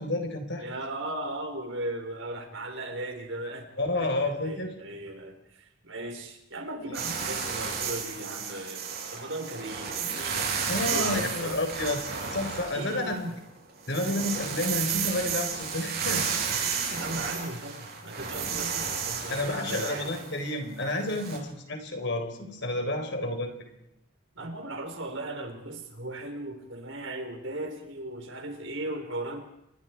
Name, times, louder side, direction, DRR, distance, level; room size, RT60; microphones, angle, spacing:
voice 1, 0.0-0.6 3.8-4.7 10.7-13.1 13.9-16.4 19.3-23.8, left 1 dB, 55° left, 5 dB, 4.3 m, -30 dB
voice 2, 0.6-3.7 3.9-10.5 10.8-11.6 12.7-13.3 16.6-20.1 24.3-29.4, right 1 dB, 65° right, 4 dB, 4.4 m, -37 dB
Electromagnetic Waves on a Macbook Pro, 6.9-13.3 13.7-21.4, right 6 dB, 50° right, 7.8 m, -32 dB
29.0 x 22.5 x 4.7 m, 0.86 s
head